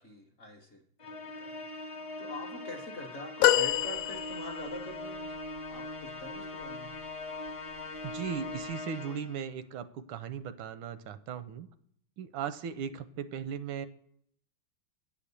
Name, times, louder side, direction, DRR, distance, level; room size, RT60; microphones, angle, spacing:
voice 1, 0.0-5.3 5.7-6.9, left 1 dB, 50° left, 3 dB, 0.9 m, -45 dB
Musical instrument, 1.0-9.5, left 2 dB, 30° left, 0.6 m, -41 dB
sound 1, 3.4-4.8 5.6-5.7, left 12 dB, 80° left, 1.3 m, -26 dB
voice 2, 8.0-11.7 12.2-13.9, right 7 dB, 85° right, 12 dB, 1.4 m, -37 dB
8.9 x 5.0 x 6.8 m, 0.67 s
omnidirectional pair, 2.2 m